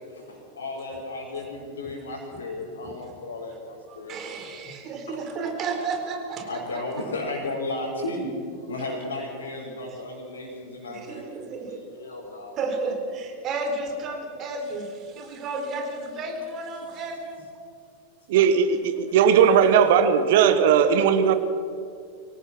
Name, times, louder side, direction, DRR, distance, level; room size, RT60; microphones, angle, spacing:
voice 1, 0.1-4.2 5.1-5.2 6.4-8.4 8.6-11.4 11.6-12.6 19.3-19.5, left 2 dB, 70° left, -5 dB, 4.5 m, -34 dB
voice 2, 3.9-6.8 10.9-11.8 12.5-17.4 18.9-19.1, right 3 dB, 35° right, 4 dB, 4.1 m, -32 dB
voice 3, 18.3-21.3, right 7 dB, 55° right, 10 dB, 1.3 m, -18 dB
24.5 x 18.0 x 6.1 m, 2.3 s
figure-of-eight pair, 90°, 0 cm